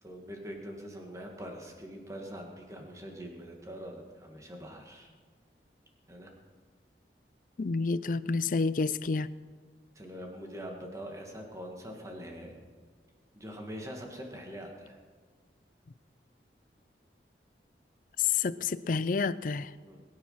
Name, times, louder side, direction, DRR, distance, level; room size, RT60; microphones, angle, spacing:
voice 1, 0.0-5.1 6.1-6.3 10.0-12.6 13.3-15.0 19.8-20.0, equal, 20° right, 2 dB, 2.0 m, -43 dB
voice 2, 7.6-9.3 18.2-19.7, left 4 dB, 50° left, 16 dB, 0.5 m, -29 dB
21.5 x 9.8 x 5.7 m, 1.6 s
head